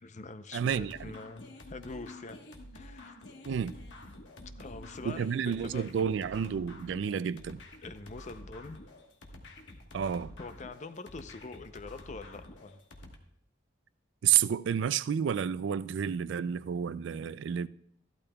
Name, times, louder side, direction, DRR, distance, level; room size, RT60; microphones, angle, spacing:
voice 1, 0.0-2.4 2.7-3.1 4.6-5.3 5.6-6.2 7.8-8.8 10.4-12.8, left 3 dB, 40° left, 0.6 m, -44 dB
voice 2, 0.5-1.1 3.4-3.8 5.0-7.6 9.9-10.3 14.2-17.7, right 8 dB, 65° right, 0.3 m, -30 dB
coming dance, 0.7-13.1, left 1 dB, 65° left, 1.3 m, -49 dB
14.0 x 12.0 x 2.3 m
head